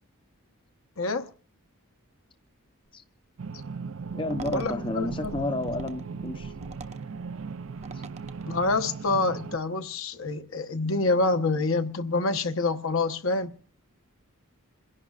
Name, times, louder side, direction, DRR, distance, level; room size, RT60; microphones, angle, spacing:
voice 1, 1.0-1.3 4.5-5.3 8.5-13.5, left 3 dB, 65° left, 1.0 m, -27 dB
sound 1, 3.4-9.6, right 5 dB, 65° right, 0.5 m, -37 dB
voice 2, 4.1-6.5 7.9-8.0, left 2 dB, 25° left, 0.7 m, -31 dB
sound 2, 4.1-9.0, right 2 dB, 30° right, 0.7 m, -44 dB
28.0 x 11.0 x 2.5 m
head